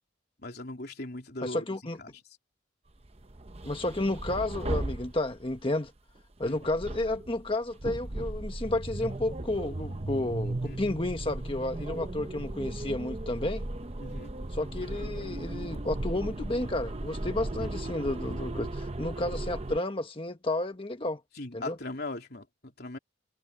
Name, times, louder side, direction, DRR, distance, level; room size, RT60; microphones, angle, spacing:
voice 1, 0.4-1.7 2.0-2.1 6.4-6.7 10.6-10.8 11.8-12.1 14.0-14.3 21.4-23.0, left 2 dB, 55° left, 3.5 m, -39 dB
voice 2, 1.4-2.0 3.6-5.9 6.4-13.6 14.5-21.2 21.5-21.8, left 2 dB, 25° left, 1.4 m, -31 dB
sound 1, 3.0-5.7 6.4-19.8, right 1 dB, 30° right, 0.9 m, -36 dB
head